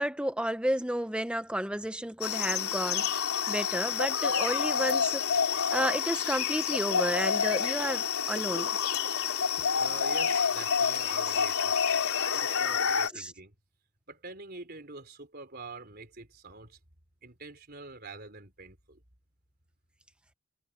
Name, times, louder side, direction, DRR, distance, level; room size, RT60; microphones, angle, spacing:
voice 1, 0.0-3.2 3.5-8.8 13.1-13.3, right 1 dB, 5° right, 1.0 m, -32 dB
sound 1, 2.2-13.1, left 7 dB, 75° left, 3.8 m, -28 dB
voice 2, 9.8-11.9 12.3-13.6 14.1-16.8 17.2-19.0, right 3 dB, 45° right, 4.1 m, -45 dB
head